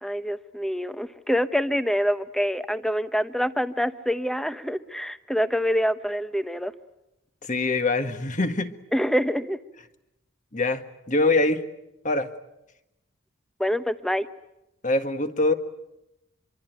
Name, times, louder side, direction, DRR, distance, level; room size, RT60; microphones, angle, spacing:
voice 1, 0.0-6.7 8.9-9.6 13.6-14.3, equal, ahead, 11 dB, 0.9 m, -26 dB
voice 2, 7.4-8.7 10.5-11.6 12.0-12.3 14.8-15.5, left 2 dB, 35° left, 8 dB, 1.7 m, -24 dB
26.0 x 24.0 x 9.2 m, 0.88 s
head